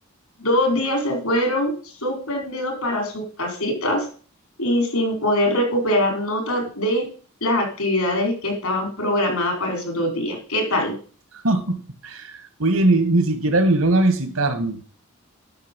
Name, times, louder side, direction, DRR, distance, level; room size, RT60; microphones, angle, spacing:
voice 1, 0.4-1.7 2.0-4.1 4.6-7.0 7.4-10.9, left 1 dB, 90° left, 2 dB, 5.1 m, -23 dB
voice 2, 11.4-12.3 12.6-14.8, right 2 dB, 80° right, 9 dB, 2.1 m, -20 dB
11.5 x 6.7 x 5.5 m, 0.40 s
head